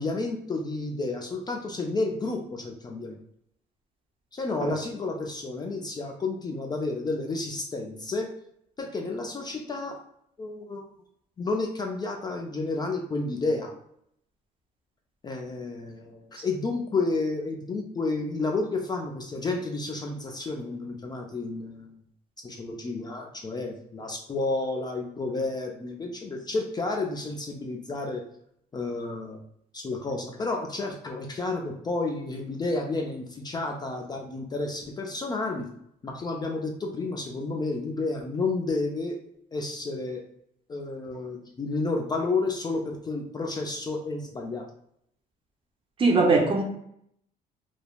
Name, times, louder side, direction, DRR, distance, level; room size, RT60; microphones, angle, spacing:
voice 1, 0.0-3.2 4.3-8.3 8.8-10.0 10.4-10.8 11.4-13.7 15.2-21.9 22.4-28.2 28.7-29.4 29.7-35.7 36.0-39.2 39.5-40.2 40.7-44.6, left 3 dB, 25° left, 1 dB, 0.4 m, -31 dB
voice 2, 46.0-46.6, right 3 dB, 30° right, 1 dB, 0.6 m, -21 dB
3.1 x 2.0 x 2.2 m, 0.72 s
cardioid pair, 110°, 17 cm